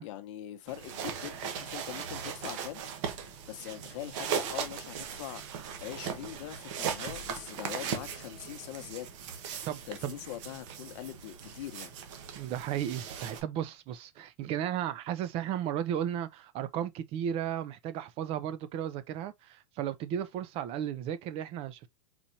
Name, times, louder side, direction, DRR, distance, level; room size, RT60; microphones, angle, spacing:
voice 1, 0.0-5.4 5.8-9.1 9.9-11.9, left 13 dB, 55° left, 0.9 m, -42 dB
sound 1, 0.7-13.4, right 7 dB, 55° right, 1.2 m, -38 dB
voice 2, 9.7-10.1 12.4-21.9, right 10 dB, 30° right, 0.5 m, -34 dB
4.4 x 4.2 x 2.6 m
supercardioid pair, 145°, 19 cm